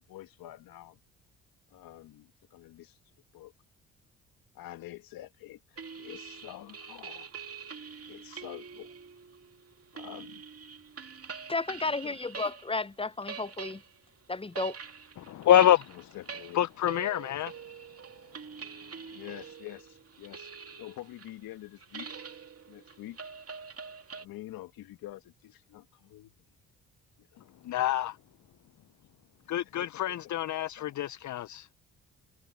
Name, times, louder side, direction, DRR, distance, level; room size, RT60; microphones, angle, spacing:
voice 1, 0.1-1.0 1.7-3.0 3.3-3.5 4.5-7.3 8.1-8.9 9.9-10.4 12.0-12.2 15.9-16.6 19.1-20.5 20.8-22.1 22.7-23.2 24.1-26.3 27.2-27.4 29.8-30.0 30.6-30.9, left 15 dB, 75° left, 2.1 m, -47 dB
sound 1, 5.8-12.8 13.1-24.2, right 6 dB, 40° right, 2.6 m, -45 dB
voice 2, 11.5-13.8 14.3-14.8, left 3 dB, 15° left, 0.8 m, -33 dB
voice 3, 15.2-16.0 16.5-17.5 27.6-28.2 29.5-31.7, left 11 dB, 55° left, 0.7 m, -26 dB
hypercardioid pair, 50°, 35 cm